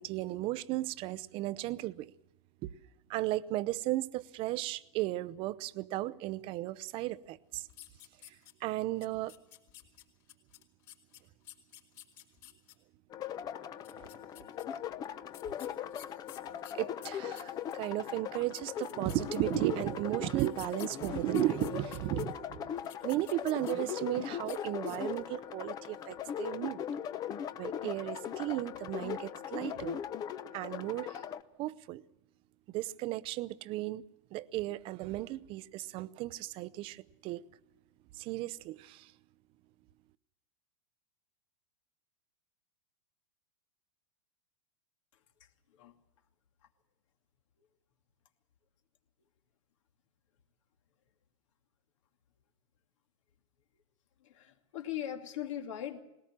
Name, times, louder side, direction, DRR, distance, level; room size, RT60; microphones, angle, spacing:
voice 1, 0.0-2.1 2.6-2.7 3.1-7.7 8.3-8.4 8.6-9.3 13.9-14.1 16.8-22.7 23.0-26.8 27.6-30.0 30.5-31.2 31.6-32.0 32.7-34.0 34.3-37.4 38.1-39.1, right 16 dB, 35° right, 0.7 m, -35 dB
sound 1, 7.7-8.7 9.0-12.7 13.7-14.6 15.3-17.8 18.3-18.4 18.5-19.7 20.3-22.2 22.8-24.1 24.4-24.6 24.9-25.3, left 13 dB, 45° left, 4.0 m, -53 dB
sound 2, 13.1-31.4, left 9 dB, 25° left, 0.7 m, -39 dB
voice 2, 54.2-56.0, left 11 dB, 70° left, 2.6 m, -39 dB
20.5 x 18.0 x 7.4 m
supercardioid pair, 145°, 16 cm